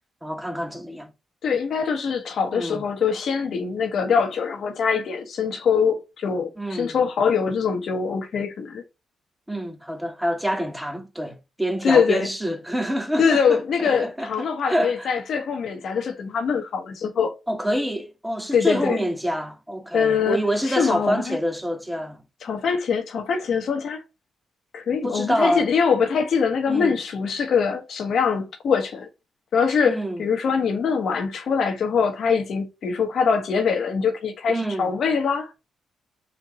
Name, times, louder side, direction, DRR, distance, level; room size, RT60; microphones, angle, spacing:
voice 1, 0.2-1.1 2.5-2.9 6.6-7.0 9.5-15.1 17.5-22.2 25.0-25.7 26.7-27.0 29.8-30.2 34.5-34.9, equal, 10° right, 1.3 m, -27 dB
voice 2, 1.4-8.8 11.8-12.3 13.2-17.3 18.5-19.0 19.9-20.4 20.7-21.4 22.4-24.0 24.7-29.1 29.5-35.5, left 6 dB, 70° left, 1.1 m, -23 dB
4.5 x 2.6 x 4.0 m
supercardioid pair, 55°, 0 cm